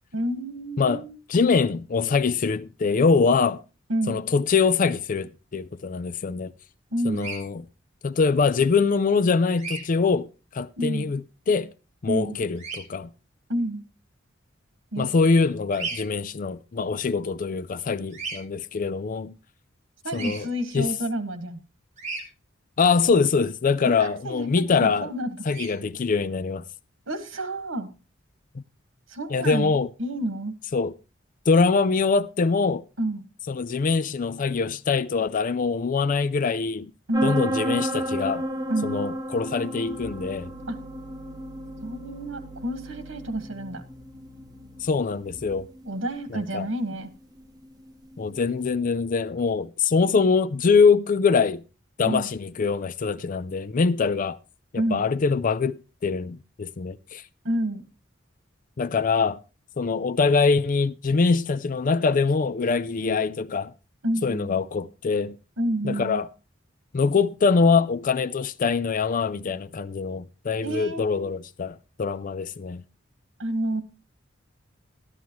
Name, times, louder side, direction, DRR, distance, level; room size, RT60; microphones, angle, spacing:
voice 1, 0.1-1.2 3.9-4.3 6.9-7.3 10.8-11.1 12.1-12.4 13.5-13.8 14.9-15.1 20.0-21.6 23.8-25.4 27.1-27.9 29.1-29.7 30.0-30.5 33.0-33.2 37.1-37.4 38.7-39.0 40.7-40.8 41.8-43.8 45.8-47.1 52.0-52.3 54.8-55.1 57.4-57.8 64.0-64.5 65.6-66.2 70.6-71.3 73.4-73.8, right 1 dB, 85° right, 1.5 m, -29 dB
voice 2, 1.3-3.6 4.1-6.5 7.1-7.6 8.0-10.3 10.5-11.2 11.5-11.7 12.0-13.1 15.0-19.3 20.1-20.5 20.7-20.9 22.8-25.1 25.5-26.6 28.5-28.6 29.3-29.9 30.7-30.9 31.5-32.8 33.5-36.9 37.2-38.4 38.8-40.5 44.8-45.7 46.3-46.7 48.2-51.6 52.0-54.4 54.9-57.2 58.8-59.4 59.8-63.7 64.2-65.4 65.8-66.3 66.9-72.8, left 4 dB, 45° left, 0.4 m, -23 dB
Bird vocalization bird call bird song, 7.2-7.4 9.6-9.8 12.6-12.8 15.7-16.0 18.1-18.4 20.1-20.4 22.0-22.2 25.5-25.7, right 4 dB, 40° right, 2.9 m, -34 dB
sound 1, 37.1-48.6, right 1 dB, 20° right, 1.0 m, -33 dB
sound 2, 39.9-45.8, right 2 dB, 10° left, 3.6 m, -47 dB
13.0 x 11.5 x 3.0 m
head